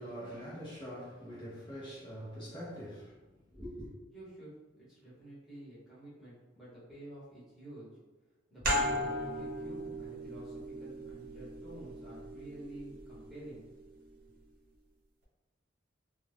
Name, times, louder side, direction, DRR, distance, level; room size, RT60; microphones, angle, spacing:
voice 1, 0.0-3.2 3.5-3.9, equal, 25° left, 0.7 m, -44 dB
voice 2, 4.1-7.9 8.5-13.6, right 1 dB, ahead, 1.1 m, -50 dB
sound 1, 8.6-13.9, equal, 50° right, 0.8 m, -37 dB
2.4 x 2.3 x 3.4 m
head